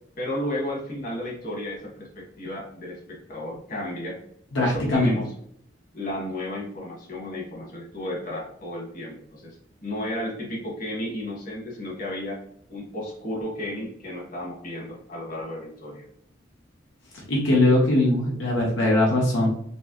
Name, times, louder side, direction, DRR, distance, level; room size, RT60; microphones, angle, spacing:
voice 1, 0.2-4.2 4.6-5.3 5.9-12.4 12.7-16.0, left 1 dB, 50° left, -3 dB, 1.6 m, -33 dB
voice 2, 4.5-5.1 17.1-19.5, left 1 dB, 90° left, -4 dB, 1.3 m, -21 dB
6.2 x 2.1 x 3.1 m, 0.67 s
head